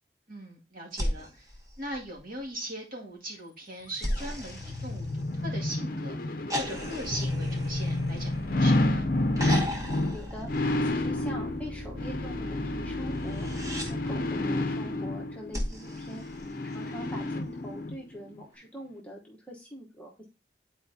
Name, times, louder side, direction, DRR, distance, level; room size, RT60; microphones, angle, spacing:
voice 1, 0.3-1.5 1.8-9.1, right 1 dB, 50° right, -2 dB, 2.2 m, -40 dB
sound 1, 0.9-2.5 4.0-5.7 6.5-8.8 9.4-11.2 13.2-13.9 15.5-17.0 18.5-18.6, equal, 20° right, 1.0 m, -36 dB
sound 2, 4.1-18.0 18.4-18.5, left 2 dB, 55° left, 0.6 m, -30 dB
sound 3, 7.0-15.4, left 1 dB, 80° right, 2.9 m, -41 dB
voice 2, 10.1-10.5 10.8-13.5 13.9-16.2 16.6-20.2, equal, 10° left, -2 dB, 1.1 m, -43 dB
10.5 x 4.4 x 2.8 m, 0.27 s
head